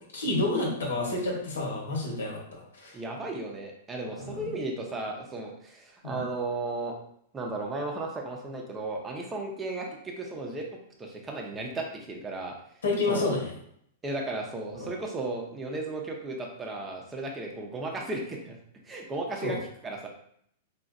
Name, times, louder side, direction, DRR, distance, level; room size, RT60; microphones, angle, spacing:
voice 1, 0.1-3.0 4.2-4.5 6.0-6.2 12.8-13.5 14.8-14.9 19.4-19.6, left 2 dB, 90° left, -1 dB, 1.1 m, -29 dB
voice 2, 2.9-6.9 7.3-10.7 11.0-12.5 13.1-13.3 14.0-18.6 18.8-20.1, right 2 dB, 20° right, 0 dB, 0.7 m, -35 dB
4.1 x 2.4 x 2.5 m, 0.69 s
hypercardioid pair, 125°, 0 cm